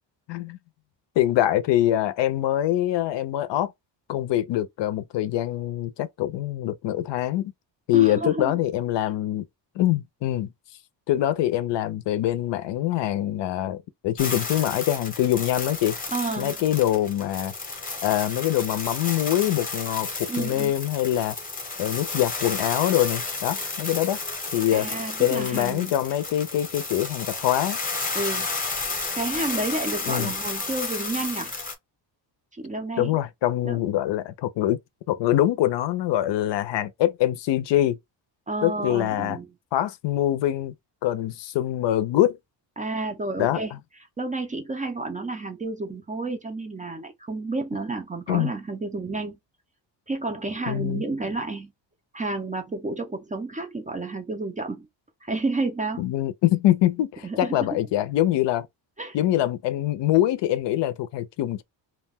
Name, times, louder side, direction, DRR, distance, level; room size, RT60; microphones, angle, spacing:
voice 1, 1.2-3.7 4.1-7.5 7.9-9.4 9.8-10.5 11.1-16.0 16.4-17.5 18.0-21.4 21.8-24.2 24.5-24.9 25.2-27.8 30.1-30.3 33.0-34.8 35.1-38.0 38.6-39.4 39.7-40.7 41.0-42.4 43.4-43.8 48.3-48.5 50.7-51.0 56.0-58.7 59.1-61.6, left 13 dB, 70° left, 0.5 m, -24 dB
voice 2, 7.9-8.5 16.1-16.5 20.3-20.7 24.7-25.9 28.1-28.5 29.1-31.5 32.6-33.1 33.6-33.8 38.5-39.5 42.8-43.7 44.2-49.4 50.1-51.7 52.1-54.9 55.2-56.1 57.2-57.7 59.0-59.2, right 2 dB, 20° right, 0.4 m, -30 dB
sound 1, 14.2-31.7, left 3 dB, 20° left, 0.7 m, -32 dB
2.4 x 2.1 x 3.4 m
cardioid pair, 150°, 45 cm